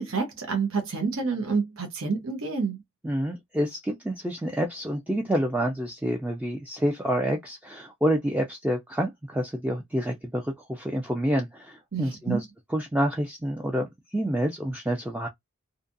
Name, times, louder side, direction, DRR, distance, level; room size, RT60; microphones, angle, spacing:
voice 1, 0.0-2.8 11.9-12.4, right 4 dB, 65° right, 0.8 m, -28 dB
voice 2, 3.0-12.4 12.7-15.3, equal, 5° right, 0.3 m, -28 dB
2.6 x 2.4 x 2.5 m
head